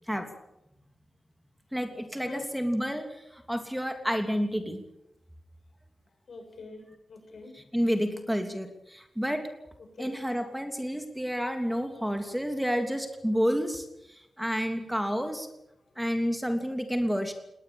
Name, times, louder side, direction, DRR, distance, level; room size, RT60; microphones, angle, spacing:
voice 1, 1.7-4.8 7.7-9.5 10.0-15.5 16.0-17.3, equal, 5° right, 6 dB, 3.0 m, -30 dB
voice 2, 6.3-7.6 9.8-10.3 15.8-15.9, left 3 dB, 70° left, 5 dB, 7.4 m, -44 dB
20.5 x 19.5 x 9.0 m, 0.84 s
cardioid pair, 80°, 0 cm